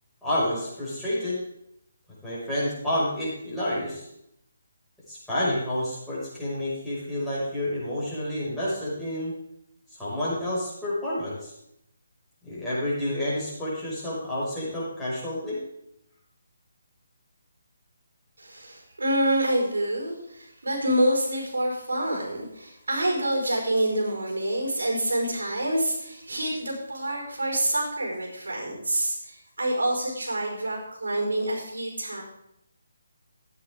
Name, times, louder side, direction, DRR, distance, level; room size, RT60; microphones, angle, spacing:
voice 1, 0.2-1.4 2.2-4.1 5.1-9.3 10.0-11.5 12.4-15.6, left 1 dB, ahead, -11 dB, 5.3 m, -29 dB
voice 2, 18.4-32.2, right 1 dB, 85° right, 0 dB, 4.6 m, -27 dB
14.0 x 9.3 x 3.6 m, 0.78 s
figure-of-eight pair, 155°, 0 cm